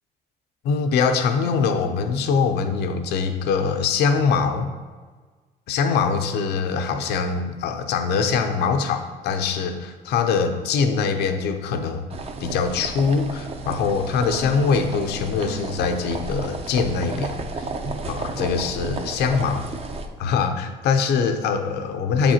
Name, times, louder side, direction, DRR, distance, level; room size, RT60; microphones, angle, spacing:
voice 1, 0.6-4.7 5.7-12.1 12.4-17.7 18.0-19.7 20.2-22.3, left 5 dB, 75° left, 7 dB, 0.6 m, -23 dB
sound 1, 12.1-20.1, right 3 dB, 35° right, 0.5 m, -32 dB
7.0 x 5.1 x 2.8 m, 1.4 s
cardioid pair, 110°, 17 cm